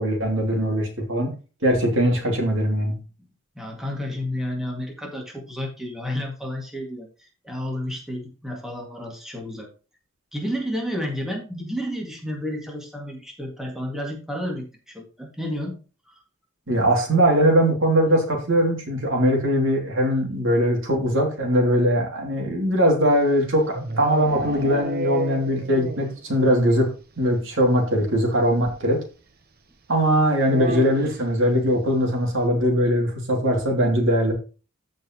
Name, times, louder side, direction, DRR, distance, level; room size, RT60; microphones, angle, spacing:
voice 1, 0.0-1.3 1.6-3.0 16.7-29.0 29.9-34.3, equal, 65° right, 1 dB, 2.7 m, -21 dB
voice 2, 3.6-9.7 10.3-15.7 16.1-16.2, left 1 dB, ahead, 0 dB, 2.1 m, -31 dB
sound 1, 23.2-26.2 26.5-26.6 26.9-27.0 27.3-27.4 28.6-28.7 30.4-31.3, right 2 dB, 45° right, 1.0 m, -31 dB
15.0 x 5.2 x 3.0 m, 0.34 s
head